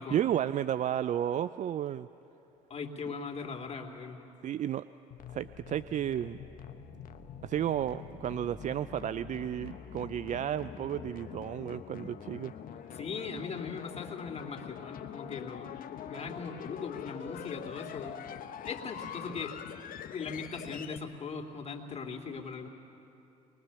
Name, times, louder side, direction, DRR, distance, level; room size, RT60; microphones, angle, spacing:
voice 1, 0.1-2.1 4.4-4.8 5.3-6.4 7.4-12.5 16.1-16.2, right 10 dB, 45° right, 15 dB, 0.4 m, -32 dB
voice 2, 2.7-4.2 12.9-15.7 16.0-18.2 18.6-19.7 20.1-22.7, left 5 dB, 35° left, 1 dB, 2.7 m, -39 dB
sound 1, 5.1-21.0, left 9 dB, 50° left, 1.1 m, -44 dB
23.0 x 21.0 x 7.0 m, 3.0 s
hypercardioid pair, 60°, 18 cm